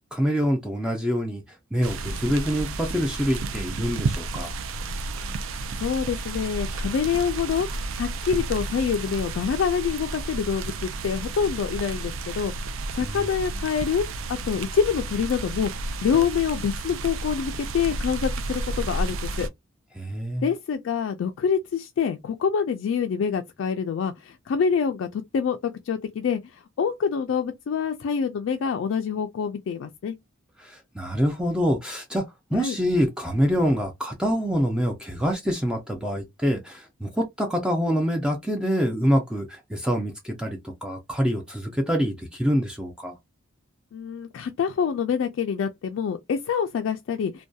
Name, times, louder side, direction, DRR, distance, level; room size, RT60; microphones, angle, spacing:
voice 1, 0.1-4.5 13.0-13.3 19.9-20.5 30.6-32.2 32.5-43.1, equal, 5° right, 0.4 m, -26 dB
sound 1, 1.8-19.5, right 2 dB, 75° right, 0.4 m, -32 dB
voice 2, 5.8-12.5 12.9-15.7 16.0-19.5 20.4-30.1 32.5-32.8 43.9-47.4, left 6 dB, 70° left, 0.3 m, -26 dB
2.6 x 2.2 x 2.2 m
head